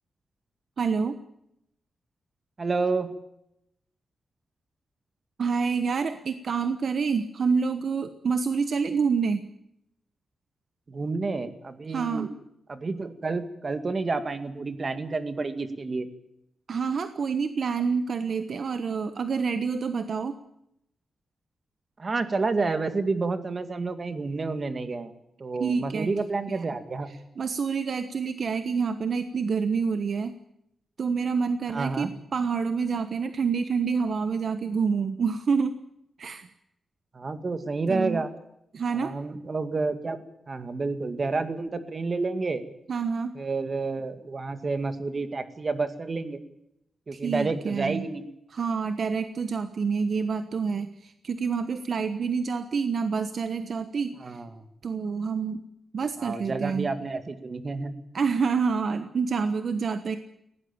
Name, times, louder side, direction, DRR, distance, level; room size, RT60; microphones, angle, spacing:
voice 1, 0.8-1.2 5.4-9.4 11.9-12.3 16.7-20.4 25.6-26.1 26.5-26.6 27.1-30.4 31.0-35.8 36.2-36.5 37.9-38.2 38.7-39.1 42.9-43.4 47.1-48.0 48.5-54.4 54.8-55.6 55.9-56.9 58.1-60.2, right 5 dB, 55° right, 9 dB, 1.2 m, -27 dB
voice 2, 2.6-3.1 10.9-12.3 12.7-16.1 22.0-25.1 25.4-27.1 31.7-32.1 37.1-38.3 39.0-42.6 43.3-46.4 47.1-48.3 54.2-54.5 56.2-57.9, right 3 dB, 35° right, 9 dB, 2.2 m, -29 dB
19.5 x 17.5 x 8.8 m, 0.80 s
wide cardioid pair, 125°, 0 cm